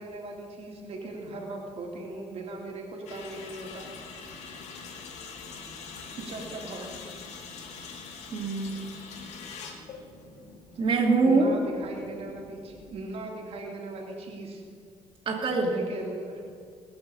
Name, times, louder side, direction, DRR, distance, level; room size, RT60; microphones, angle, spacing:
voice 1, 0.0-3.9 6.2-6.9 11.2-14.6 15.6-16.4, right 2 dB, 65° right, 0 dB, 2.8 m, -39 dB
sound 1, 3.1-13.0, left 5 dB, 85° left, 2.0 m, -44 dB
voice 2, 8.3-9.0 10.8-11.5 15.3-15.7, right 3 dB, 50° right, -3 dB, 2.5 m, -24 dB
20.5 x 7.0 x 6.9 m, 2.3 s
cardioid pair, 105°, 11 cm